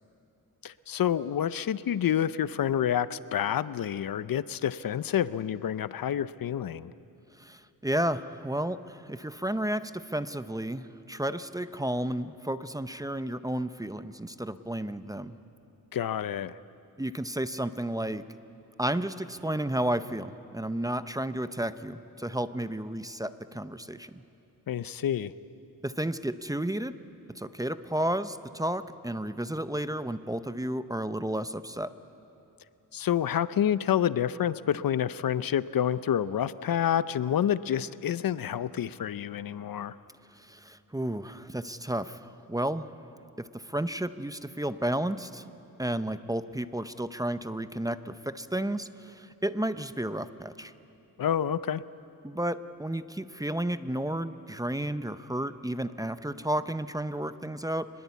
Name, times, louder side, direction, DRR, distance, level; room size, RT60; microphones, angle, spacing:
voice 1, 0.6-6.9 15.9-16.6 24.7-25.3 32.9-40.0 51.2-51.8, left 10 dB, 70° left, 16 dB, 0.6 m, -28 dB
voice 2, 7.4-15.4 17.0-18.2 18.8-24.2 25.8-27.0 27.3-31.9 40.3-42.9 43.4-45.4 45.8-50.7 52.2-57.9, right 1 dB, 10° right, 12 dB, 0.6 m, -32 dB
24.5 x 21.0 x 8.3 m, 2.7 s
wide cardioid pair, 100°, 36 cm